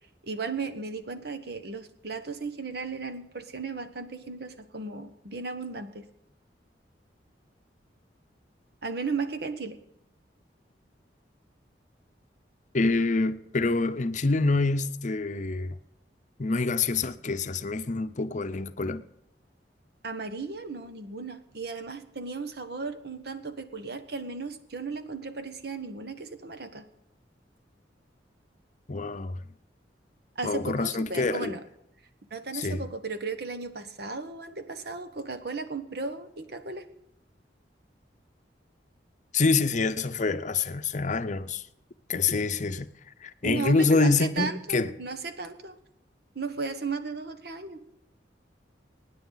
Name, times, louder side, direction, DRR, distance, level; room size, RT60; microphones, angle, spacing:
voice 1, 0.2-6.1 8.8-9.8 20.0-26.8 30.3-31.6 32.3-36.9 43.4-45.8 46.3-47.8, right 4 dB, 65° right, 1.2 m, -35 dB
voice 2, 12.7-15.8 16.4-19.0 28.9-29.4 30.4-31.5 32.5-32.8 39.3-41.6 42.1-42.9 43.2-44.9, left 3 dB, 45° left, 0.7 m, -26 dB
24.0 x 9.9 x 4.0 m
head